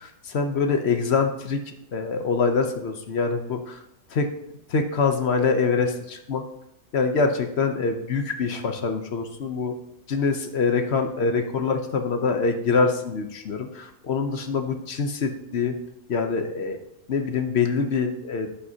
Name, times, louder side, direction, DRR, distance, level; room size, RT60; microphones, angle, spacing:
voice 1, 0.0-1.6 1.9-3.8 4.1-4.3 4.7-6.5 6.9-9.7 10.1-15.7 16.1-16.8 17.1-18.5, left 4 dB, 50° left, 6 dB, 1.0 m, -24 dB
15.0 x 5.5 x 2.8 m, 0.83 s
omnidirectional pair, 1.7 m